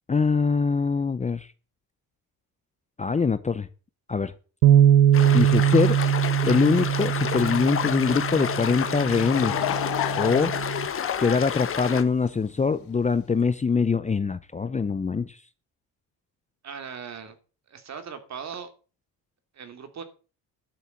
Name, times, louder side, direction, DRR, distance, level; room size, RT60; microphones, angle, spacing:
voice 1, 0.1-1.5 3.0-3.7 4.1-4.3 5.3-6.0 6.5-9.6 10.2-10.5 11.2-15.4, left 5 dB, 20° left, 13 dB, 0.7 m, -23 dB
Bass guitar, 4.6-10.9, right 10 dB, 85° right, 0.9 m, -22 dB
sound 1, 5.1-12.0, left 7 dB, 35° left, 1.5 m, -30 dB
Laughter / Crowd, 8.8-12.6, left 15 dB, 70° left, 1.2 m, -32 dB
voice 2, 16.6-17.3 17.7-18.7 19.5-20.0, right 6 dB, 45° right, 8 dB, 2.9 m, -38 dB
12.0 x 7.3 x 7.3 m, 0.36 s
cardioid pair, 105°, 37 cm